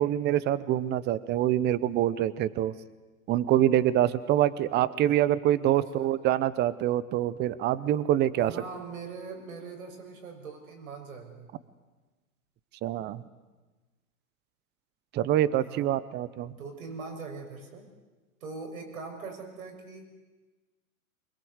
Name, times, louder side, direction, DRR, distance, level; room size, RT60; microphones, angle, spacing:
voice 1, 0.0-2.7 3.3-8.5 12.8-13.2 15.1-16.5, right 12 dB, 25° right, 18 dB, 0.9 m, -25 dB
voice 2, 5.7-6.1 8.4-11.5 15.6-15.9 16.5-17.9 18.4-20.0, right 4 dB, 75° right, 3 dB, 6.8 m, -42 dB
24.5 x 22.0 x 8.2 m, 1.3 s
hypercardioid pair, 125°, 43 cm